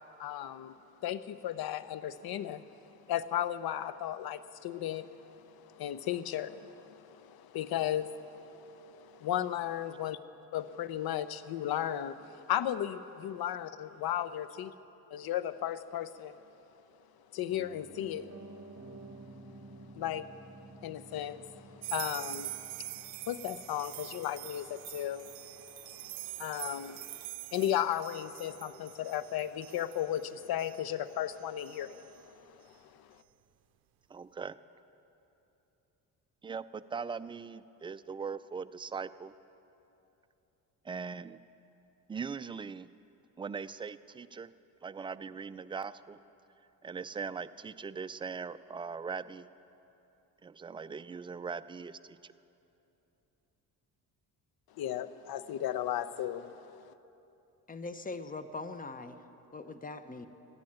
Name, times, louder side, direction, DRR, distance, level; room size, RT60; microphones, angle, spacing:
voice 1, 0.2-0.7 1.0-2.6 3.1-10.2 10.5-14.7 15.1-16.4 17.3-18.3 19.9-20.3 20.8-27.2 27.5-32.7 33.0-33.1 54.8-56.9, left 11 dB, 65° left, 15 dB, 0.8 m, -35 dB
Piano, 17.5-27.5 27.8-27.9, right 3 dB, 35° right, 1.4 m, -53 dB
sound 1, 21.8-32.2, right 18 dB, 65° right, 0.6 m, -45 dB
voice 2, 34.1-34.6 36.4-39.3 40.8-41.4 42.1-42.9 43.4-44.5 44.8-46.2 46.8-49.5 50.4-52.3, right 5 dB, 15° right, 13 dB, 0.3 m, -40 dB
voice 3, 57.7-59.2 59.5-60.3, left 3 dB, 20° left, 11 dB, 0.9 m, -41 dB
15.0 x 10.5 x 8.7 m, 2.9 s
supercardioid pair, 75°, 40 cm